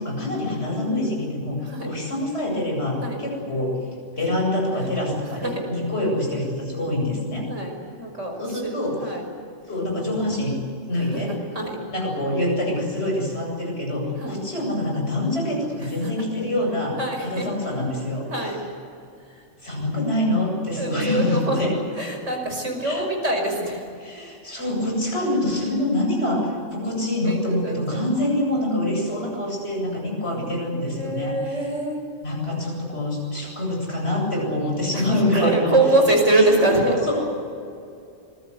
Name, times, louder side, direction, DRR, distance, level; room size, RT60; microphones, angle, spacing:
voice 1, 0.0-3.8 4.2-7.5 8.4-9.0 9.7-10.6 10.9-11.3 11.9-18.3 19.6-21.8 22.8-23.1 24.0-31.6 32.2-35.7 36.3-37.3, left 1 dB, 60° left, 0 dB, 8.3 m, -25 dB
voice 2, 8.0-9.2 10.9-11.8 14.2-14.4 16.0-16.1 17.0-17.5 18.3-18.6 19.4-19.5 20.8-23.8 27.2-28.1 30.3-32.0 34.9-37.0, right 2 dB, 80° right, 3 dB, 5.8 m, -24 dB
26.5 x 22.0 x 8.2 m, 2.5 s
omnidirectional pair, 1.3 m